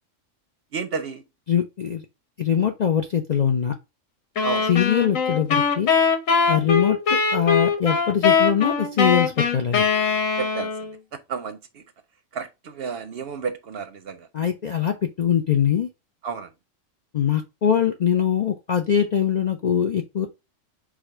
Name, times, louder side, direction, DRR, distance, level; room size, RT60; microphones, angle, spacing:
voice 1, 0.7-1.2 4.4-4.7 6.6-6.7 10.4-11.8 12.3-14.3 16.2-16.5, right 5 dB, 60° right, 0.7 m, -32 dB
voice 2, 1.5-2.0 2.4-3.7 4.7-5.9 6.5-9.8 14.3-15.9 17.1-20.3, left 8 dB, 55° left, 0.4 m, -22 dB
sound 1, 4.4-10.9, left 5 dB, 90° left, 1.4 m, -21 dB
4.8 x 2.3 x 4.4 m
omnidirectional pair, 1.3 m